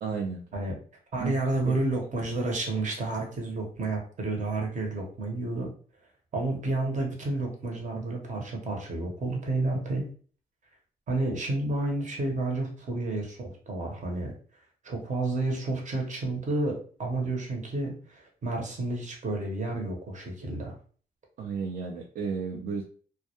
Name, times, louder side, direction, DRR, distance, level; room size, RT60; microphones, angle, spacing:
voice 1, 0.0-0.4 1.2-1.3 1.7-1.8 21.4-22.8, right 5 dB, 70° right, 0 dB, 0.4 m, -32 dB
voice 2, 1.1-5.7 6.3-10.1 11.1-14.3 14.8-20.7, right 2 dB, 55° right, 0 dB, 0.8 m, -30 dB
2.2 x 2.1 x 2.8 m, 0.43 s
cardioid pair, 95°, 16 cm